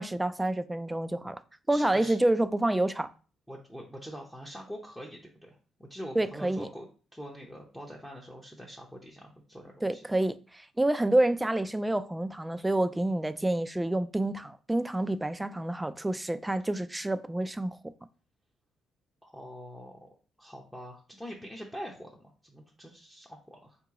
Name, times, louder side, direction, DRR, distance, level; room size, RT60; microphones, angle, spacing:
voice 1, 0.0-1.4 1.7-3.1 6.2-6.7 9.8-17.8, right 1 dB, 10° right, 0.3 m, -28 dB
voice 2, 1.7-2.2 3.5-6.9 7.1-10.0 19.2-20.1 20.4-23.8, equal, 5° left, 0.7 m, -44 dB
3.8 x 2.9 x 3.7 m
cardioid pair, 90°, 0 cm